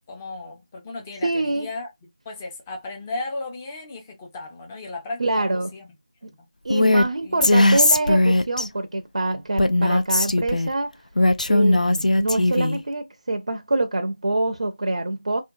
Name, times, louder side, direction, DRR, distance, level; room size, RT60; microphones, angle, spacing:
voice 1, 0.1-1.9 2.2-5.9 6.3-6.4 7.2-7.5, left 2 dB, 10° left, 0.5 m, -35 dB
voice 2, 1.2-1.7 5.2-5.7 6.2-6.3 6.6-10.9 11.5-15.4, right 2 dB, 60° right, 0.5 m, -25 dB
Female speech woman speaking, 6.7-7.1 7.4-8.7 9.6-10.7 11.2-12.8, left 1 dB, 85° left, 0.5 m, -18 dB
2.7 x 2.1 x 2.6 m
figure-of-eight pair, 170°, 4 cm